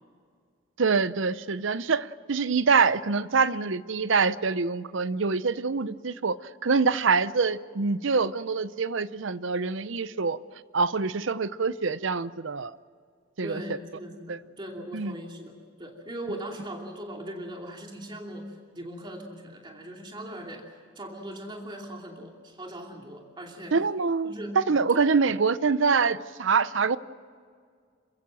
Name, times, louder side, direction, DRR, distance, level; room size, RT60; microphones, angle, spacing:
voice 1, 0.8-6.4 6.6-10.4 10.7-12.7 13.4-13.6 14.3-14.4 14.9-15.1 23.7-27.0, right 4 dB, 65° right, 16 dB, 0.7 m, -25 dB
voice 2, 13.4-23.8 24.2-24.6 24.9-25.1, right 1 dB, 20° right, 1 dB, 2.7 m, -40 dB
28.0 x 15.5 x 7.6 m, 2.1 s
head